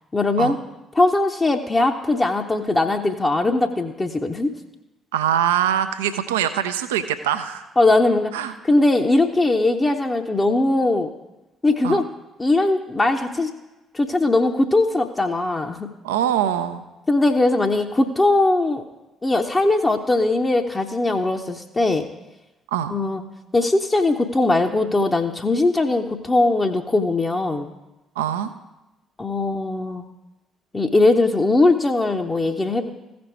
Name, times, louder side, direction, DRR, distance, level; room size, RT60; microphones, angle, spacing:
voice 1, 0.1-0.6 0.9-4.5 7.8-8.3 8.6-11.1 11.6-12.0 12.4-13.5 13.9-15.9 17.1-18.8 19.2-22.1 22.9-23.2 23.5-27.7 29.2-30.0 30.7-32.9, left 2 dB, 20° left, 3 dB, 0.7 m, -20 dB
voice 2, 5.1-7.7 8.3-8.5 11.8-12.0 16.0-16.8 22.7-22.9 28.2-28.5, right 10 dB, 70° right, 10 dB, 0.3 m, -23 dB
15.0 x 5.2 x 4.5 m, 1.0 s
figure-of-eight pair, 45°, 0 cm